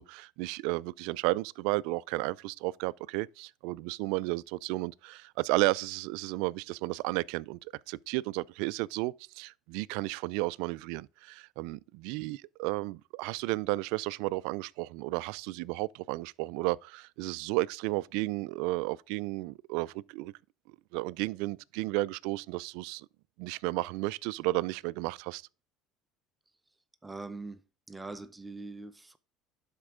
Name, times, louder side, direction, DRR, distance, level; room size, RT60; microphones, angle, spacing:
voice 1, 0.0-20.3 20.9-23.1 23.4-25.4, right 21 dB, 80° right, 0.3 m, -33 dB
voice 2, 27.0-27.6 27.9-29.2, right 3 dB, 15° right, 0.6 m, -42 dB
11.5 x 4.4 x 3.6 m
supercardioid pair, 105°, 0 cm